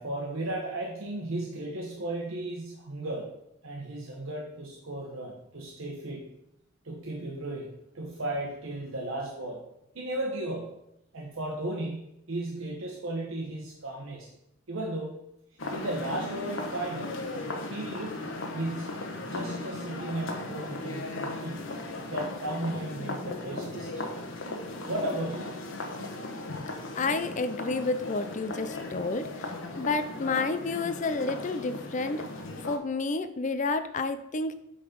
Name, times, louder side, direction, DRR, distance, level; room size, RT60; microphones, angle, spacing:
voice 1, 0.0-3.3 3.6-6.3 6.8-9.6 9.9-10.8 11.1-14.3 14.7-15.1 15.7-17.2 17.6-18.2 18.5-19.0 19.3-21.7 22.1-24.1 24.9-25.5, right 1 dB, 75° right, -1 dB, 1.2 m, -35 dB
sound 1, 15.6-32.8, left 2 dB, 70° left, 1.1 m, -37 dB
voice 2, 27.0-32.2 32.6-34.5, left 3 dB, 35° left, 11 dB, 0.5 m, -30 dB
8.5 x 3.9 x 5.3 m, 0.80 s
head